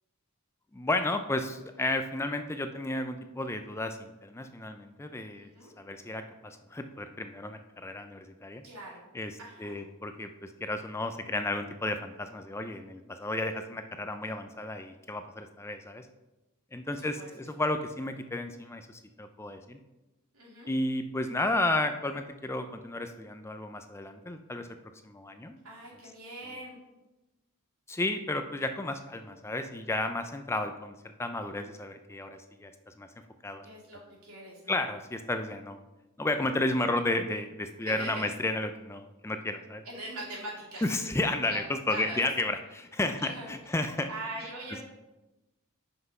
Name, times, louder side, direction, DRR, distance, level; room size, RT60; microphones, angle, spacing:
voice 1, 0.7-5.5 5.8-8.6 9.1-9.3 9.6-16.1 16.7-19.8 20.7-24.7 25.0-25.6 27.9-32.7 33.0-33.1 33.4-33.7 34.7-35.8 36.2-39.8 40.8-44.1, left 2 dB, 10° left, 8 dB, 0.3 m, -32 dB
voice 2, 5.4-5.7 8.6-9.0 9.4-9.7 12.8-12.9 16.8-17.3 20.3-20.7 25.6-26.8 33.6-34.8 37.8-38.4 39.8-40.8 41.4-41.6 41.9-42.2 43.2-43.8 44.1-44.8, right 1 dB, 80° right, -4 dB, 2.7 m, -42 dB
5.9 x 5.6 x 5.3 m, 1.0 s
head